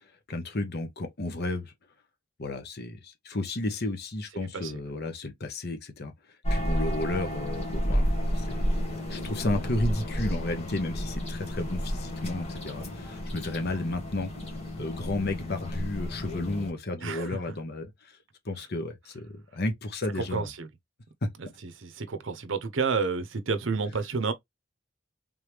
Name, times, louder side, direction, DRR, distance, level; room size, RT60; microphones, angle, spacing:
voice 1, 0.3-1.7 2.4-6.1 6.5-8.6 9.1-14.3 14.8-18.2 18.4-20.5 21.2-21.3, left 2 dB, 55° left, 1.0 m, -32 dB
voice 2, 4.3-4.7 17.0-17.4 20.2-20.7 21.6-24.3, right 4 dB, 65° right, 0.7 m, -30 dB
sound 1, 6.4-16.7, equal, 30° left, 1.6 m, -31 dB
3.6 x 3.2 x 3.3 m
head